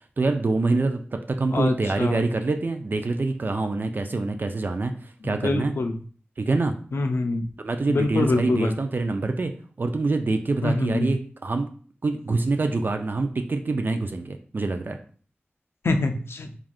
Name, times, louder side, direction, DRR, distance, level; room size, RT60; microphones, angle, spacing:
voice 1, 0.2-5.7 6.4-6.7 7.6-9.5 9.8-11.7 12.0-15.0, right 3 dB, 50° right, 6 dB, 0.3 m, -25 dB
voice 2, 1.5-2.2 5.2-5.9 6.9-7.4 7.9-8.7 10.6-11.1 15.8-16.5, left 3 dB, 75° left, 6 dB, 0.4 m, -25 dB
3.4 x 2.4 x 2.4 m, 0.43 s
cardioid pair, 45°, 4 cm